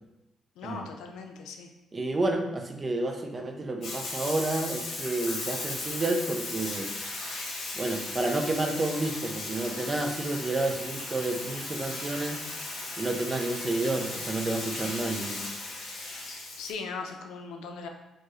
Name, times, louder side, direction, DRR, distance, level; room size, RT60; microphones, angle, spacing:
voice 1, 0.6-1.7 15.9-16.0 16.6-17.9, left 4 dB, 90° left, 4 dB, 0.5 m, -39 dB
voice 2, 1.9-6.9 7.7-12.4 13.0-15.4, right 2 dB, 30° right, 4 dB, 0.6 m, -30 dB
Bathtub (filling or washing), 3.8-16.7, left 2 dB, 70° left, 1.3 m, -37 dB
4.5 x 3.0 x 3.1 m, 0.97 s
cardioid pair, 90°, 0 cm